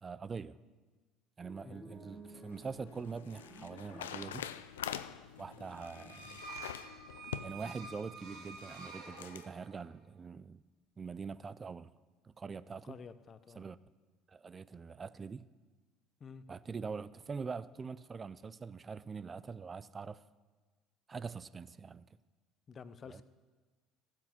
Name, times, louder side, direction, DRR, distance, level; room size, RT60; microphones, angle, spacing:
voice 1, 0.0-0.6 1.4-4.5 5.4-6.4 7.4-10.6 11.0-11.9 12.2-13.0 13.6-13.8 14.3-15.5 16.5-20.2 21.1-22.0 23.1-23.2, right 5 dB, 30° right, 0.5 m, -44 dB
sound 1, 1.4-4.8, right 1 dB, 15° left, 2.2 m, -54 dB
sound 2, 2.1-9.5, left 10 dB, 90° left, 0.4 m, -46 dB
sound 3, 5.8-9.9, right 4 dB, 70° right, 2.1 m, -49 dB
voice 2, 12.8-13.6 16.2-16.4 22.7-23.2, left 6 dB, 40° left, 0.7 m, -50 dB
15.0 x 7.7 x 6.0 m
hypercardioid pair, 70°, 0 cm